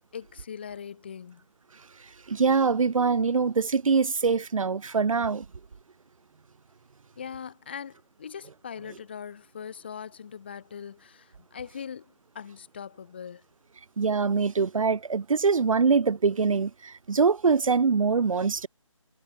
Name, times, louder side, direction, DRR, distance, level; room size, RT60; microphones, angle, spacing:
voice 1, 0.1-1.4 7.1-13.4, left 7 dB, 20° left, 1.6 m, -41 dB
voice 2, 2.3-5.5 14.0-18.7, right 5 dB, 80° right, 0.6 m, -24 dB
figure-of-eight pair, 175°, 17 cm